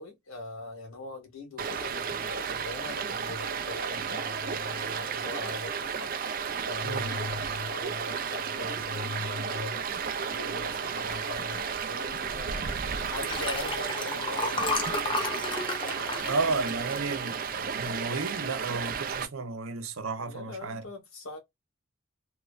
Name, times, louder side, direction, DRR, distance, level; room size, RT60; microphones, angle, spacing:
voice 1, 0.0-6.1 6.6-9.9 10.3-15.3 20.2-21.4, left 2 dB, 85° left, 1.5 m, -41 dB
Stream, 1.6-19.3, right 6 dB, 45° right, 0.4 m, -33 dB
Liquid, 13.1-17.7 18.2-18.5 18.7-18.8, left 2 dB, 25° left, 0.5 m, -32 dB
voice 2, 16.2-20.8, right 3 dB, 85° right, 0.7 m, -32 dB
3.0 x 2.1 x 2.4 m
head